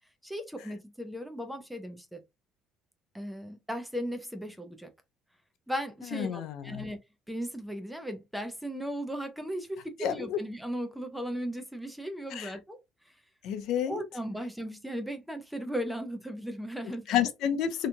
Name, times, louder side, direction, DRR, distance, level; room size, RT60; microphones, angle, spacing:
voice 1, 0.2-2.2 3.1-4.9 5.7-7.0 7.3-12.8 13.9-17.1, equal, ahead, 0.4 m, -36 dB
voice 2, 6.1-6.8 10.0-10.4 12.3-12.5 13.4-14.0 17.1-17.9, left 9 dB, 60° left, 0.4 m, -30 dB
2.8 x 2.3 x 2.5 m
cardioid pair, 170°, 0 cm